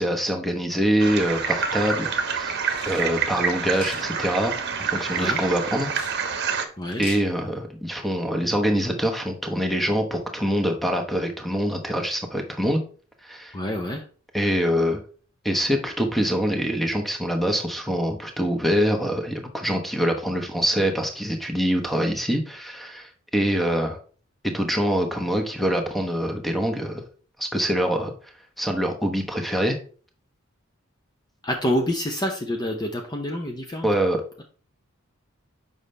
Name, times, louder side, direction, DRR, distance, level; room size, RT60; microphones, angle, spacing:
voice 1, 0.0-2.5 2.9-4.5 4.8-5.9 7.0-12.8 13.2-13.5 14.3-15.0 15.4-24.0 24.4-27.0 27.4-28.1 28.6-29.8 33.8-34.4, equal, ahead, 3 dB, 1.0 m, -24 dB
sound 1, 1.0-6.7, right 5 dB, 55° right, 1.0 m, -27 dB
sound 2, 2.6-3.1 3.7-4.1 5.9-6.2 6.8-7.2, left 2 dB, 40° left, 2.3 m, -39 dB
voice 2, 13.5-14.0 31.4-33.9, equal, 20° left, 2 dB, 0.7 m, -27 dB
7.1 x 5.4 x 3.3 m, 0.41 s
head